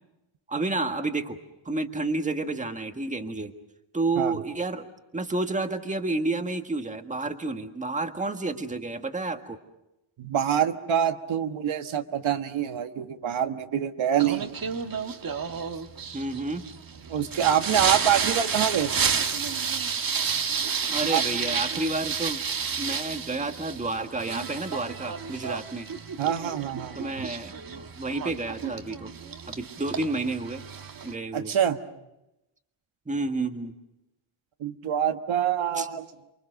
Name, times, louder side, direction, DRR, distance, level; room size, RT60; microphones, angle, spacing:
voice 1, 0.5-1.4 1.6-3.5 3.9-4.9 5.1-9.6 16.1-16.7 20.9-22.4 22.8-25.9 26.9-29.1 29.5-30.6 31.0-31.5 33.1-33.7 35.8-35.9, right 2 dB, 15° right, 6 dB, 1.7 m, -30 dB
voice 2, 10.2-14.5 17.1-18.9 21.1-21.2 26.2-27.3 31.3-31.8 34.6-36.0, right 9 dB, 70° right, 6 dB, 1.5 m, -26 dB
Singing, 14.2-31.1, right 6 dB, 45° right, 1.6 m, -31 dB
29.0 x 23.5 x 6.5 m, 0.92 s
cardioid pair, 115°, 50 cm